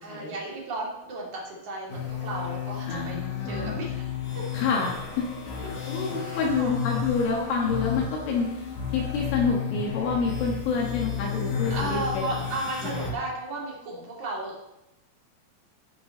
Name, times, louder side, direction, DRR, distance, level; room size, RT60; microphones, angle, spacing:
voice 1, 0.0-3.2 3.4-4.1 4.4-4.5 5.6-5.7 6.2-6.8 11.7-14.6, right 2 dB, 40° right, -3 dB, 3.6 m, -34 dB
sound 1, 1.9-13.1, left 7 dB, 55° left, 4.1 m, -32 dB
voice 2, 2.9-3.8 4.5-5.3 5.9-8.5 8.9-12.2, left 5 dB, 75° left, -2 dB, 3.9 m, -28 dB
14.5 x 9.9 x 3.9 m, 0.92 s
omnidirectional pair, 5.8 m